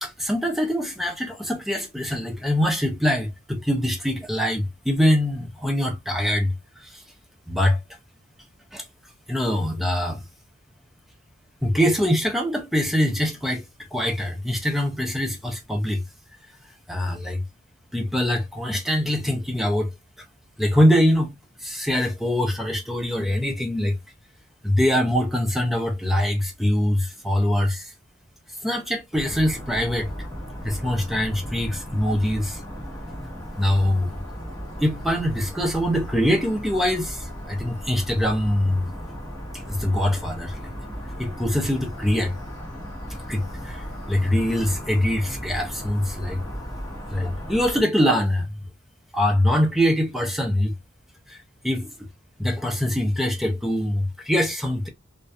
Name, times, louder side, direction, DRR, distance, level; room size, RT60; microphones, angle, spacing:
voice 1, 0.0-6.5 6.8-7.0 7.5-7.8 8.7-8.8 9.3-10.2 11.6-13.6 13.9-16.0 16.9-17.4 17.9-19.9 20.6-21.3 21.6-24.0 24.6-27.9 28.6-30.1 30.6-32.6 33.6-34.1 34.8-38.9 39.5-40.7 41.2-42.3 43.3-46.4 47.1-48.6 49.1-50.7 51.3-51.4 51.6-51.9 52.4-54.9, equal, ahead, 0.4 m, -23 dB
sound 1, 29.1-47.8, equal, 20° left, 0.7 m, -36 dB
2.3 x 2.1 x 2.6 m
head